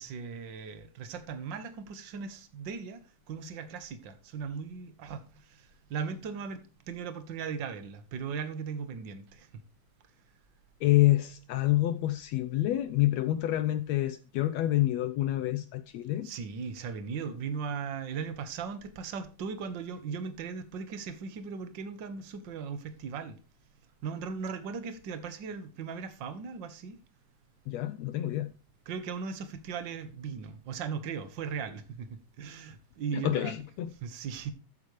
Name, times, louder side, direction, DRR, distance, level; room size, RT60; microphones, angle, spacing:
voice 1, 0.0-9.5 16.2-23.4 24.0-27.0 28.9-33.6 34.0-34.5, right 6 dB, 50° right, 1.4 m, -38 dB
voice 2, 10.8-16.3 27.7-28.5 33.1-33.9, left 15 dB, 80° left, 1.5 m, -27 dB
14.0 x 8.2 x 3.2 m
omnidirectional pair, 3.8 m